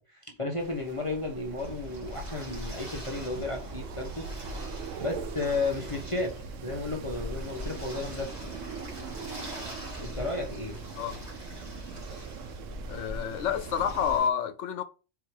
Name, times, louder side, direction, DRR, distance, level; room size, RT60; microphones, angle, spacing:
voice 1, 0.0-4.3 5.0-6.3 6.6-8.6 10.0-10.8, left 3 dB, 25° left, 1.0 m, -33 dB
Wind, 0.6-14.3, right 9 dB, 80° right, 0.9 m, -43 dB
sound 1, 1.6-14.2, equal, 35° right, 2.3 m, -41 dB
voice 2, 12.9-14.8, left 8 dB, 75° left, 1.0 m, -29 dB
4.8 x 4.5 x 4.7 m
omnidirectional pair, 1.3 m